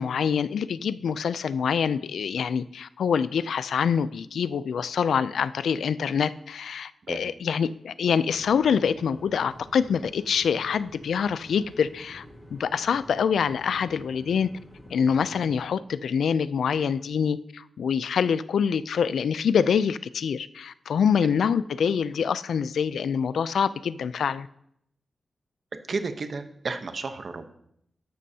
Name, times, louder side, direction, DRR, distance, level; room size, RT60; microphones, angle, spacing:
voice 1, 0.0-12.2 12.5-14.5 14.9-24.5, left 7 dB, 90° left, 15 dB, 0.3 m, -25 dB
sound 1, 8.3-15.6, left 1 dB, 5° left, 2.3 m, -48 dB
voice 2, 25.9-27.4, right 4 dB, 45° right, 8 dB, 0.9 m, -32 dB
13.0 x 11.5 x 2.8 m, 0.73 s
wide cardioid pair, 165°, 0 cm